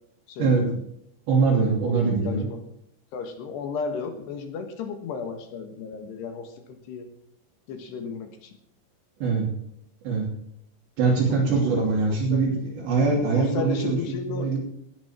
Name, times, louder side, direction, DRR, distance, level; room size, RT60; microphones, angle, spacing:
voice 1, 0.3-0.8 1.5-2.6 3.1-7.1 7.7-8.5 11.1-11.4 11.8-12.6 13.4-14.6, left 5 dB, 65° left, 6 dB, 3.4 m, -34 dB
voice 2, 1.3-2.5 9.2-9.5 10.0-10.3 11.0-14.0 14.3-14.6, right 4 dB, 65° right, -2 dB, 4.9 m, -22 dB
19.0 x 10.5 x 4.5 m, 0.73 s
omnidirectional pair, 5.7 m